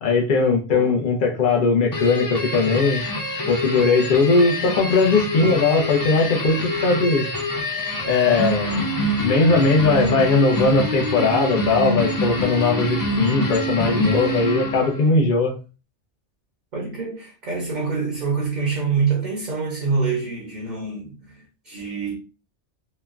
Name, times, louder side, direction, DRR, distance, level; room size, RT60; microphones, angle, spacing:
voice 1, 0.0-3.0 3.5-7.3 8.1-8.8 9.2-15.5, left 4 dB, 55° left, 0.8 m, -19 dB
voice 2, 0.7-1.0 16.7-22.2, right 5 dB, 50° right, 0.7 m, -26 dB
sound 1, 1.9-15.1, equal, 30° left, 0.4 m, -26 dB
3.0 x 2.2 x 2.4 m
omnidirectional pair, 1.2 m